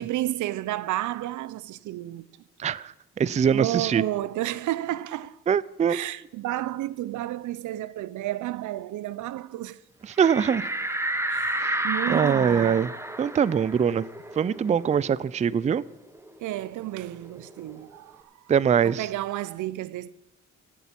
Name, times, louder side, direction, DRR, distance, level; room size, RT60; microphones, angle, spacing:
voice 1, 0.0-2.2 3.5-5.4 5.9-9.8 11.3-12.9 16.4-18.2 18.8-20.1, right 15 dB, 80° right, 0.6 m, -31 dB
voice 2, 2.6-4.0 5.5-6.0 10.2-10.7 11.6-11.8 12.1-12.9 13.2-14.0 14.4-15.8 18.5-19.1, right 7 dB, 25° right, 0.4 m, -23 dB
sound 1, 10.2-15.4 15.7-15.8 16.1-17.8, right 1 dB, 10° right, 1.0 m, -31 dB
15.5 x 8.2 x 5.9 m
cardioid pair, 90°, 30 cm